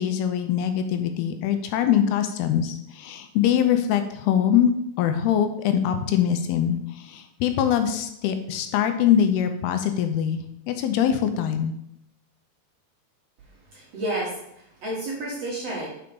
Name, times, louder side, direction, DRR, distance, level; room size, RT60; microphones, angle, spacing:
voice 1, 0.0-4.7 5.0-11.7, left 9 dB, 80° left, 7 dB, 2.5 m, -23 dB
voice 2, 13.7-15.9, right 1 dB, 55° right, -5 dB, 1.9 m, -31 dB
5.7 x 5.1 x 5.2 m, 0.76 s
omnidirectional pair, 4.6 m